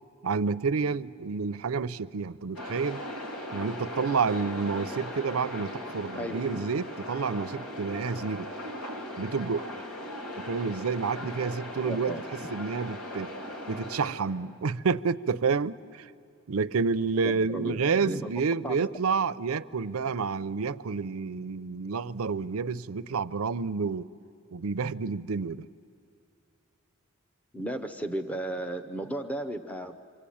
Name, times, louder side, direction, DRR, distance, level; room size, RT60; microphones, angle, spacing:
voice 1, 0.2-3.0 3.5-8.5 9.2-9.8 10.4-12.2 12.5-13.4 13.7-16.1 16.5-24.1 24.5-25.7, right 5 dB, 75° right, 0.5 m, -29 dB
sound 1, 2.5-14.1, left 1 dB, 85° left, 3.0 m, -38 dB
voice 2, 6.2-6.6 11.2-11.3 11.8-12.2 17.2-18.8 27.5-30.0, right 1 dB, 5° left, 0.7 m, -35 dB
27.5 x 24.5 x 8.6 m
head